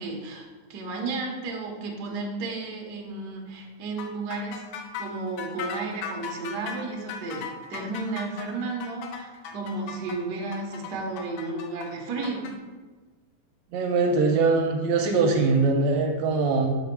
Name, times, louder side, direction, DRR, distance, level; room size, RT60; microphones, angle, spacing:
voice 1, 0.0-4.6 4.9-12.5, right 3 dB, 60° right, 0 dB, 1.0 m, -33 dB
sound 1, 4.0-12.5, left 7 dB, 85° left, 2.1 m, -38 dB
voice 2, 13.7-16.7, right 3 dB, 75° right, 3 dB, 1.8 m, -22 dB
5.4 x 4.9 x 6.0 m, 1.4 s
omnidirectional pair, 3.6 m